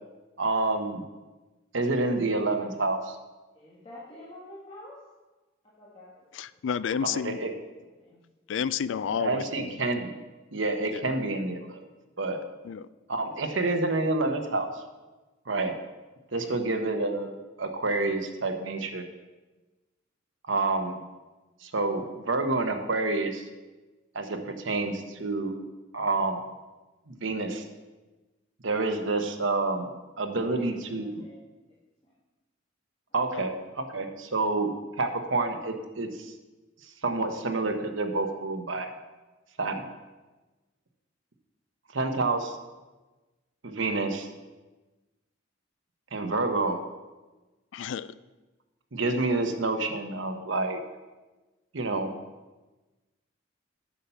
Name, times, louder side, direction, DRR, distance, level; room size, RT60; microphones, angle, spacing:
voice 1, 0.4-1.0 1.7-3.2 7.0-7.5 9.2-10.1 10.5-11.8 12.2-12.4 13.1-14.7 15.5-15.7 16.3-19.0 20.5-21.0 21.6-23.4 24.1-25.6 25.9-26.4 27.1-27.6 28.6-29.9 30.2-31.2 33.1-33.5 33.8-36.3 37.0-38.9 39.6-39.8 41.9-42.6 43.6-44.3 46.1-46.8 48.9-50.8 51.7-52.1, right 3 dB, 70° right, 5 dB, 1.0 m, -28 dB
voice 2, 3.6-5.0 5.8-6.6 7.8-8.2 30.4-31.4 32.0-32.1 33.1-33.2, left 1 dB, 30° left, -7 dB, 1.7 m, -47 dB
voice 3, 6.3-7.4 8.5-9.7 10.9-11.0 12.6-12.9 33.3-33.4 47.7-48.1, left 7 dB, 65° left, 17 dB, 0.3 m, -31 dB
8.3 x 7.1 x 5.7 m, 1.2 s
head